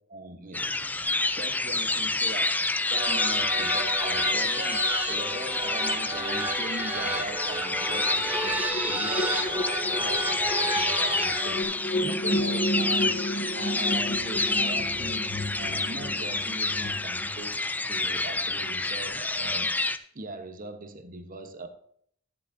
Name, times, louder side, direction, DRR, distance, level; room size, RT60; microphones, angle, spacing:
voice 1, 0.1-0.8 1.2-8.6 8.8-9.6 9.9-11.7 12.0-19.7 20.1-21.7, right 2 dB, 45° right, 1.0 m, -40 dB
sound 1, 0.5-20.0, left 2 dB, 10° left, 0.4 m, -28 dB
sound 2, 2.9-11.6, right 1 dB, 10° right, 1.0 m, -32 dB
sound 3, 7.9-17.4, equal, 40° left, 0.9 m, -32 dB
12.0 x 10.0 x 2.7 m
head